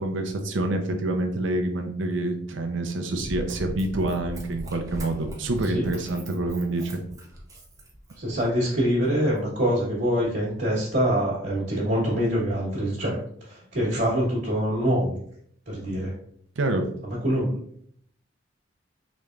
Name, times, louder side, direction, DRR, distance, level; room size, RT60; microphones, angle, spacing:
voice 1, 0.0-7.0 16.6-16.8, right 2 dB, 75° right, 5 dB, 0.6 m, -27 dB
Run, 3.1-8.4 9.0-9.1, equal, 15° right, 0.6 m, -38 dB
voice 2, 8.2-15.2 15.7-16.1 17.0-17.5, equal, 60° right, -8 dB, 1.3 m, -25 dB
4.0 x 3.3 x 2.4 m, 0.64 s
head